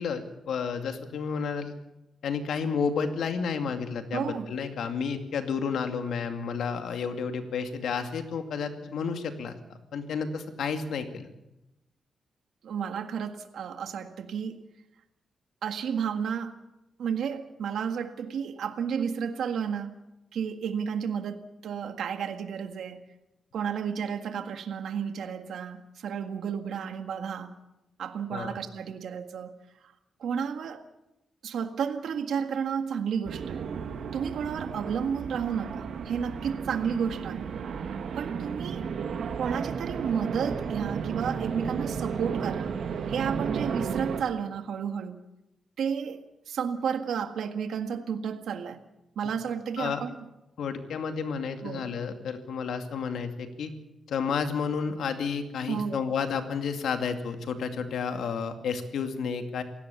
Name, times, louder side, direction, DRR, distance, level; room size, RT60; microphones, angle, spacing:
voice 1, 0.0-1.7 2.2-9.5 9.9-11.3 28.3-28.6 49.8-50.0 50.6-53.7 54.1-59.6, left 6 dB, 85° left, 6 dB, 2.4 m, -31 dB
voice 2, 4.1-4.4 12.6-14.6 15.6-16.6 17.0-19.9 20.3-23.0 23.5-27.5 28.0-29.5 29.8-29.9 30.2-30.9 31.4-33.7 34.1-37.5 38.1-38.9 39.4-42.8 43.1-45.2 45.8-48.8 49.1-50.1 51.6-51.9 55.7-56.0, right 7 dB, 85° right, 8 dB, 1.7 m, -32 dB
sound 1, 33.2-44.2, right 6 dB, 65° right, 1.6 m, -33 dB
28.0 x 17.0 x 7.1 m, 0.94 s
wide cardioid pair, 170°, 0 cm